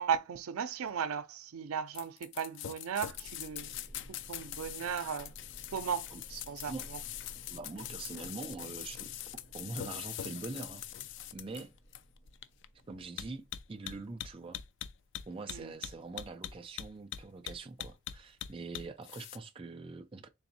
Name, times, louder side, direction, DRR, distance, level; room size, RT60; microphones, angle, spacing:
voice 1, 0.0-3.7 4.3-5.3 5.7-7.0 15.5-15.7, right 7 dB, 90° right, 0.5 m, -36 dB
sound 1, 1.9-19.4, left 11 dB, 55° left, 0.3 m, -43 dB
sound 2, 3.1-13.6, equal, 35° left, 1.4 m, -55 dB
voice 2, 7.5-9.1 9.5-10.8 11.3-11.7 12.9-14.6 15.3-20.3, right 3 dB, 25° right, 0.4 m, -43 dB
3.9 x 3.4 x 2.7 m
head